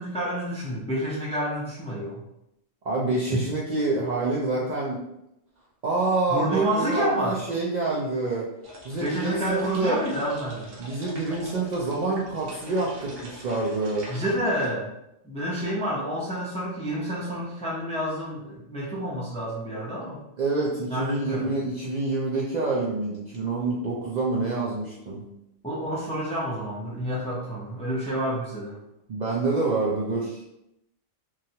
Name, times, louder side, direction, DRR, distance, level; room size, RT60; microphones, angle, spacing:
voice 1, 0.0-2.2 3.3-3.4 6.3-7.4 9.0-10.7 14.1-14.9 15.2-20.2 20.9-21.5 25.6-28.8, right 1 dB, 10° left, -5 dB, 0.4 m, -29 dB
voice 2, 2.8-5.0 5.8-8.5 8.8-10.0 10.8-14.1 20.4-25.2 29.1-30.4, right 3 dB, 60° right, -5 dB, 0.5 m, -27 dB
sound 1, 8.6-14.7, equal, 80° right, 1.0 m, -43 dB
3.0 x 2.3 x 2.7 m, 0.83 s
omnidirectional pair, 1.2 m